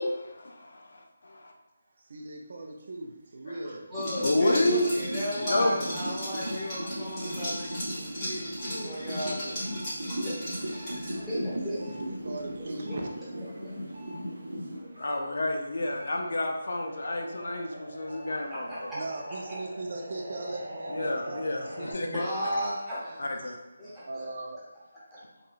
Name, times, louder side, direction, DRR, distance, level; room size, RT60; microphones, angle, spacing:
voice 1, 0.0-1.5 3.5-3.6 4.2-4.9 5.5-5.8 15.0-18.9 20.9-22.2 23.2-23.6, left 1 dB, 65° left, 2 dB, 0.4 m, -30 dB
voice 2, 2.0-3.9 11.6-13.1 18.9-21.5 21.8-22.1 24.0-24.6, right 2 dB, 50° right, 2 dB, 0.4 m, -39 dB
voice 3, 3.6-9.6 10.2-12.0 12.8-12.9 18.5-19.0 19.4-19.6 21.7-21.8 22.0-23.2 23.8-24.3 25.1-25.2, equal, ahead, -14 dB, 0.8 m, -35 dB
sound 1, 3.9-15.2 15.6-21.9, equal, 80° right, 0.7 m, -38 dB
Liquid, 4.0-11.4, equal, 20° left, 1.2 m, -38 dB
2.9 x 2.3 x 2.4 m, 1.1 s
figure-of-eight pair, 165°, 0 cm